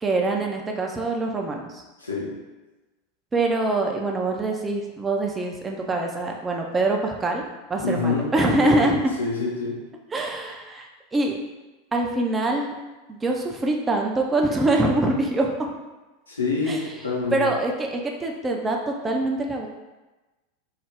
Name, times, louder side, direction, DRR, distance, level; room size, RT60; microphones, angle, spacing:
voice 1, 0.0-1.8 3.3-7.4 7.7-9.0 10.1-11.4 11.9-12.7 13.1-15.7 16.7-16.8 17.3-19.7, right 2 dB, 15° right, 1 dB, 0.3 m, -24 dB
voice 2, 2.0-2.3 7.8-9.8 16.3-17.5, left 4 dB, 80° left, -4 dB, 0.6 m, -27 dB
2.3 x 2.0 x 3.3 m, 1.1 s
figure-of-eight pair, 85°, 0 cm